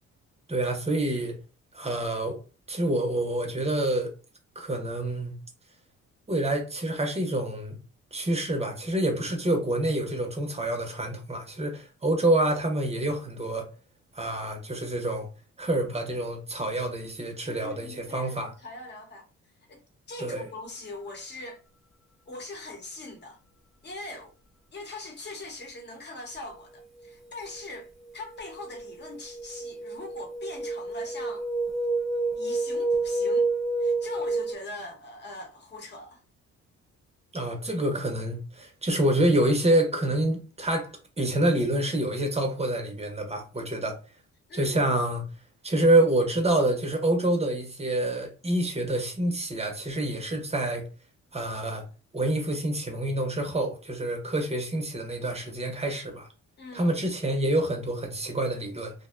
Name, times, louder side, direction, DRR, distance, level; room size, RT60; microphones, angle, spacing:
voice 1, 0.5-1.4 1.7-2.4 2.7-4.1 4.6-5.3 6.3-7.8 8.1-13.7 14.1-15.3 15.6-18.5 20.2-20.5 37.3-44.0 44.5-45.2 45.6-50.9 51.3-51.8 52.1-56.3 56.7-58.9, right 1 dB, 20° right, 0.7 m, -27 dB
voice 2, 17.4-19.3 19.7-19.8 20.1-21.6 22.3-23.4 23.8-24.3 24.7-31.5 32.3-33.5 33.8-36.2 44.5-44.8 56.6-56.9, left 2 dB, 35° left, 0.9 m, -41 dB
sound 1, 27.5-27.8 28.3-34.5, right 3 dB, ahead, 0.3 m, -29 dB
2.5 x 2.1 x 2.4 m
cardioid pair, 90°, 30 cm